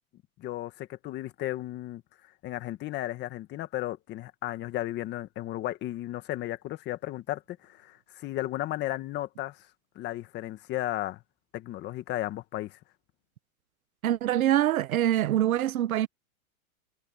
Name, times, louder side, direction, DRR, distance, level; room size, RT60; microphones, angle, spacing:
voice 1, 0.4-2.0 2.4-9.7 9.9-11.2 11.5-12.8, left 15 dB, 25° left, 1.6 m, -34 dB
voice 2, 14.0-16.1, right 12 dB, 70° right, 1.6 m, -24 dB
supercardioid pair, 155°, 43 cm